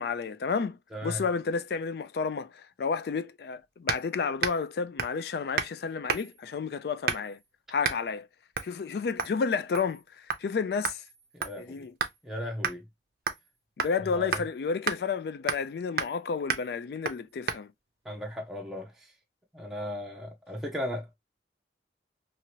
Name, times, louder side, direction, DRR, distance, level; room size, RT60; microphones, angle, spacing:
voice 1, 0.0-7.4 7.7-8.3 8.6-11.0 11.6-11.9 13.8-17.7, left 5 dB, 60° left, 0.3 m, -31 dB
sound 1, 3.9-4.1 4.4-4.7 5.0-5.2 5.6-5.8 6.1-6.4 7.1-7.4 7.8-8.0 8.5-8.7 9.2-9.4 9.7-10.0 10.3-10.4 10.8-12.2 12.6-12.8 13.3-13.5 13.8-13.9 14.3-14.4 14.9-15.0 15.5-15.7 16.0-16.2 16.5-16.7 17.0-17.2 17.5-17.6, right 6 dB, 55° right, 0.5 m, -31 dB
voice 2, 11.3-11.9 12.2-12.8 14.1-14.3 18.0-18.9 19.5-21.1, left 1 dB, ahead, 0.6 m, -36 dB
2.8 x 2.5 x 2.8 m
head